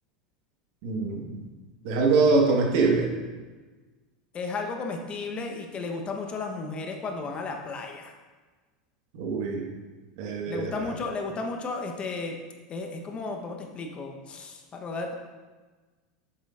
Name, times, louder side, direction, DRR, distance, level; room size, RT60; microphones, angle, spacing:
voice 1, 0.8-1.4 1.8-3.1 9.1-9.7 10.2-10.7, right 4 dB, 65° right, 0 dB, 1.5 m, -23 dB
voice 2, 4.3-8.1 10.5-12.4 12.7-15.1, left 3 dB, 30° left, 3 dB, 1.0 m, -34 dB
7.5 x 7.4 x 2.5 m, 1.3 s
hypercardioid pair, 105°, 4 cm